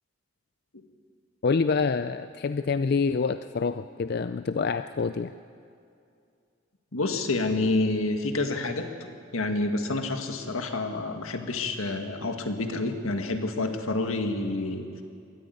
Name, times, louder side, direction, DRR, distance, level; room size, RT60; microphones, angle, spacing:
voice 1, 1.4-5.3, left 4 dB, 50° left, 11 dB, 0.4 m, -26 dB
voice 2, 6.9-15.0, left 2 dB, 80° left, 6 dB, 1.8 m, -28 dB
22.0 x 14.0 x 9.4 m, 2.4 s
head